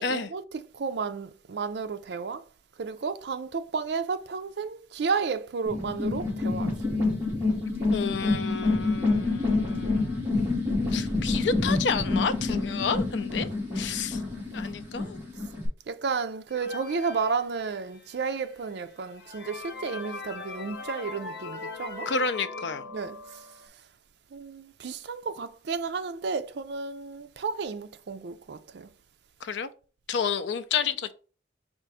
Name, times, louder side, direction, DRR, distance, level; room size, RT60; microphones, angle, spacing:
voice 1, 0.0-2.4 2.8-6.7 15.9-22.1 22.9-23.5 24.3-28.9, right 5 dB, 65° right, 0.4 m, -32 dB
sound 1, 5.7-15.7, left 3 dB, 15° right, 1.9 m, -27 dB
voice 2, 7.9-10.3 10.9-13.5 13.7-14.2 14.5-15.2 22.1-22.8 29.4-29.7 30.1-31.1, left 5 dB, 70° left, 0.5 m, -30 dB
sound 2, 16.5-18.1 18.7-18.8 19.1-23.7, left 3 dB, 90° left, 0.8 m, -40 dB
4.4 x 2.5 x 4.7 m
head